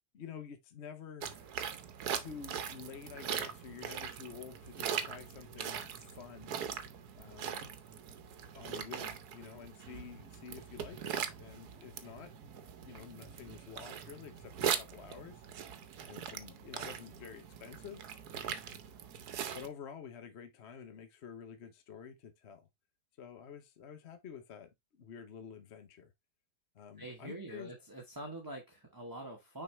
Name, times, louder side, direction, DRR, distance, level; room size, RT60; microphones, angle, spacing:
voice 1, 0.1-1.5 2.1-6.6 7.1-7.7 8.5-12.3 12.8-15.4 16.1-18.0 19.3-22.7 23.2-26.1 26.7-27.7, left 7 dB, 45° left, 1.0 m, -49 dB
sound 1, 1.2-19.7, right 8 dB, 70° right, 1.3 m, -41 dB
voice 2, 27.0-29.6, right 1 dB, 15° right, 1.1 m, -45 dB
6.3 x 4.6 x 3.3 m
omnidirectional pair, 1.8 m